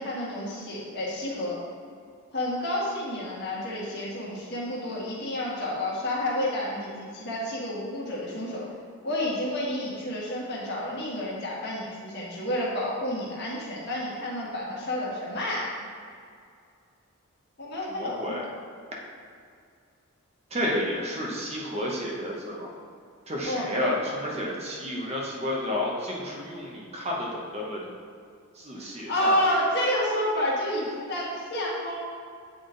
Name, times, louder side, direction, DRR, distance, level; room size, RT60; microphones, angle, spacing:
voice 1, 0.0-1.6 2.3-8.6 9.0-15.7 17.6-18.3 23.4-23.7 28.8-31.9, left 1 dB, 50° left, -5 dB, 1.4 m, -30 dB
voice 2, 18.0-18.5 20.5-22.7 23.3-27.9 28.5-29.4, left 1 dB, 30° right, -3 dB, 0.8 m, -31 dB
8.6 x 3.5 x 3.8 m, 2.3 s
head